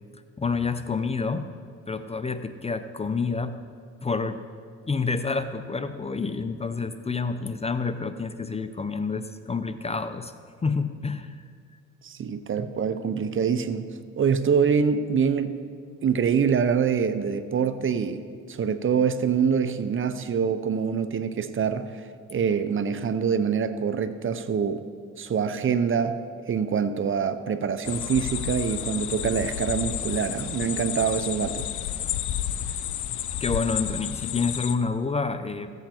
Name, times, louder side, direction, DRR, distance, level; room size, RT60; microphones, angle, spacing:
voice 1, 0.4-1.5 1.9-3.6 4.0-4.4 4.9-10.3 10.6-11.4 33.4-35.7, left 4 dB, 20° left, 10 dB, 0.5 m, -28 dB
voice 2, 12.0-13.9 14.2-15.6 16.0-24.9 25.2-26.2 26.5-31.7, right 6 dB, 45° right, 12 dB, 0.6 m, -25 dB
sound 1, 27.8-34.8, left 11 dB, 75° left, 0.6 m, -31 dB
15.0 x 8.1 x 4.4 m, 2.1 s
cardioid pair, 90°, 30 cm